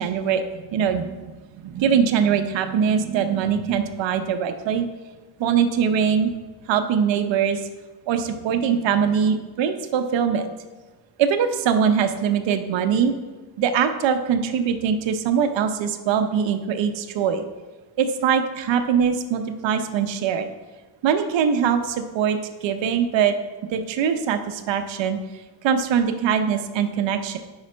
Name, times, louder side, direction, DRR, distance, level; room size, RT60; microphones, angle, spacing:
voice 1, 0.0-4.9 5.4-6.3 6.7-7.6 8.1-10.5 11.2-13.1 13.6-17.4 18.0-20.5 21.0-23.3 23.7-25.2 25.6-27.4, right 7 dB, 80° right, 7 dB, 0.7 m, -22 dB
5.2 x 4.8 x 5.4 m, 1.3 s
cardioid pair, 95°, 44 cm